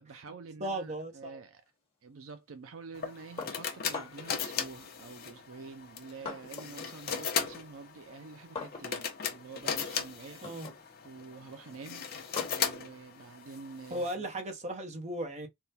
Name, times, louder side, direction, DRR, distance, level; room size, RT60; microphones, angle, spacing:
voice 1, 0.0-1.6 2.0-10.4 11.0-12.1 12.5-14.3, right 4 dB, 65° right, 0.5 m, -48 dB
voice 2, 0.6-1.4 10.4-10.7 13.9-15.5, right 1 dB, 30° right, 0.9 m, -36 dB
sound 1, 2.9-14.1, left 7 dB, 45° left, 0.8 m, -37 dB
sound 2, 3.4-4.4 5.3-6.8 7.2-14.5, left 4 dB, 25° left, 1.6 m, -46 dB
3.6 x 2.3 x 4.1 m
head